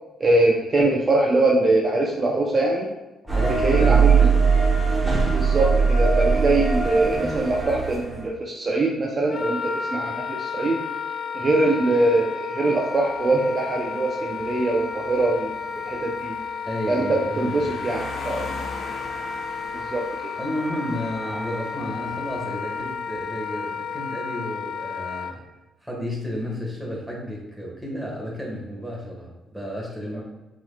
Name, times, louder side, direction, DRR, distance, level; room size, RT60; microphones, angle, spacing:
voice 1, 0.2-2.9 3.5-4.2 5.3-10.8 11.3-16.4 16.9-18.5 19.7-20.3, right 2 dB, 35° right, -1 dB, 0.6 m, -23 dB
voice 2, 3.3-4.4 16.6-17.7 20.4-25.4 25.8-30.2, equal, ahead, -3 dB, 1.5 m, -32 dB
sound 1, 3.3-8.3, right 5 dB, 15° right, 1.3 m, -20 dB
Wind instrument woodwind instrument, 9.3-25.4, left 6 dB, 55° left, 0.4 m, -32 dB
sound 2, 13.0-23.3, left 2 dB, 75° left, 1.0 m, -41 dB
5.9 x 3.6 x 2.3 m, 1.1 s
cardioid pair, 90°, 0 cm